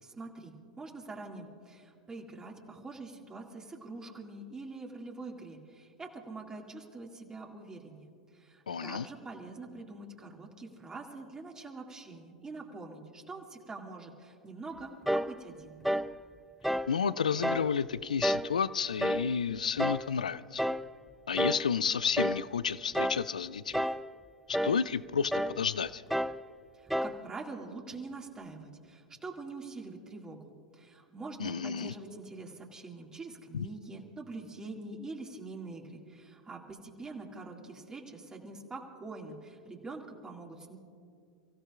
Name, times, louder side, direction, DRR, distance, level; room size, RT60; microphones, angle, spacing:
voice 1, 0.0-15.8 26.7-40.8, right 3 dB, 15° right, 0 dB, 2.1 m, -45 dB
voice 2, 8.7-9.1 16.9-20.6 21.3-23.9 24.5-26.0 31.4-31.9 33.5-33.7, left 6 dB, 85° left, 17 dB, 0.3 m, -31 dB
sound 1, 15.1-15.4 15.8-16.1 16.6-16.9 17.4-17.7 18.2-18.5 19.0-19.3 19.8-20.1 20.6-20.9 21.4-21.7 22.2-22.5 22.9-23.3 23.7-24.1 24.5-24.8 25.3-25.6 26.1-26.4 26.9-27.2, equal, ahead, 0.3 m, -30 dB
29.5 x 16.0 x 2.4 m, 2.3 s
hypercardioid pair, 90°, 4 cm